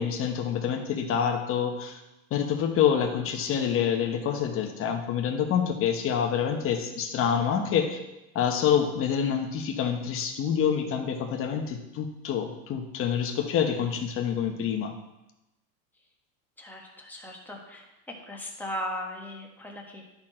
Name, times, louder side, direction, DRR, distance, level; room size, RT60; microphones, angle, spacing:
voice 1, 0.0-2.0 2.3-8.0 8.3-14.9, left 8 dB, 30° left, 4 dB, 1.1 m, -27 dB
voice 2, 16.6-17.9 18.3-20.0, equal, 5° left, -1 dB, 1.3 m, -37 dB
12.0 x 4.4 x 4.4 m, 0.96 s
supercardioid pair, 140°, 42 cm